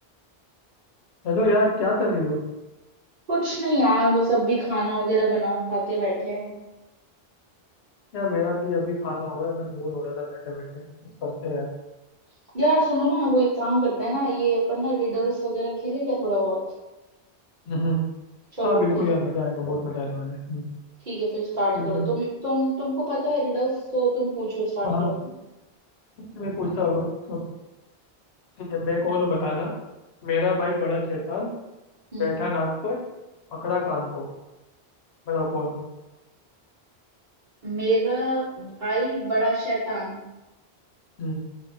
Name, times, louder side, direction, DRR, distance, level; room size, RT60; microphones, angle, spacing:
voice 1, 1.2-2.4 8.1-10.8 11.2-11.7 17.7-18.0 18.6-20.6 21.7-22.1 24.8-25.1 26.3-27.4 28.6-29.7 30.2-31.5 32.2-33.0 33.5-34.3 35.3-35.8 41.2-41.4, left 2 dB, 75° left, -2 dB, 0.9 m, -26 dB
voice 2, 3.3-6.5 12.5-16.6 18.5-18.8 21.1-25.1 32.1-32.4 37.6-40.2, right 1 dB, 50° right, -8 dB, 1.0 m, -24 dB
2.5 x 2.2 x 2.5 m, 1.0 s
omnidirectional pair, 1.1 m